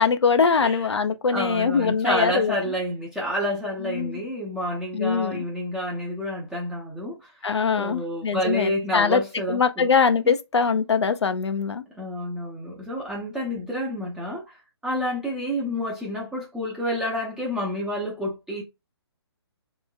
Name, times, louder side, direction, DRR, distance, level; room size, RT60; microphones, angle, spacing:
voice 1, 0.0-2.5 3.8-4.2 4.9-5.4 7.4-9.2 9.5-11.8, left 5 dB, 80° left, 0.7 m, -22 dB
voice 2, 1.3-7.3 7.7-9.9 10.2-10.3 11.9-14.6 14.8-18.6, equal, 5° right, 0.7 m, -29 dB
3.4 x 3.1 x 2.3 m
hypercardioid pair, 145°, 14 cm